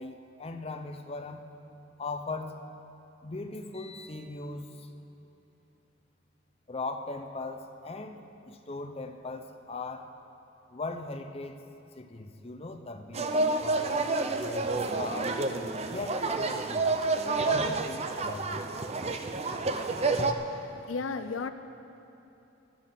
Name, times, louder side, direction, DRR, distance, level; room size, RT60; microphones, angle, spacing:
voice 1, 0.0-1.5 2.0-2.6 3.2-4.9 6.7-10.1 10.7-11.6 12.0-13.3 13.6-14.0 14.4-15.4 15.9-16.9 17.4-18.6, left 3 dB, 30° left, 6 dB, 0.6 m, -39 dB
sound 1, 13.1-20.3, right 3 dB, 30° right, 0.6 m, -29 dB
voice 2, 20.0-21.5, left 4 dB, 85° left, 10 dB, 0.6 m, -36 dB
16.0 x 12.0 x 4.4 m, 3.0 s
head